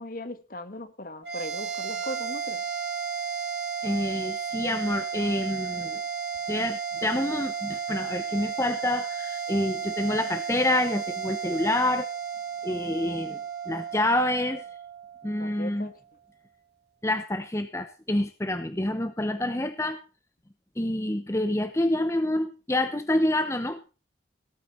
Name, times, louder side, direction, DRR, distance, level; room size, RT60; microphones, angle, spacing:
voice 1, 0.0-2.6 15.4-16.0, left 1 dB, 50° left, 1.7 m, -38 dB
sound 1, 1.2-15.8, right 6 dB, 60° right, 4.0 m, -33 dB
voice 2, 3.8-6.0 6.5-12.1 12.6-13.4 13.7-14.6 15.2-15.9 17.0-20.0 20.8-23.8, left 1 dB, 15° left, 0.9 m, -27 dB
17.5 x 9.1 x 4.4 m
head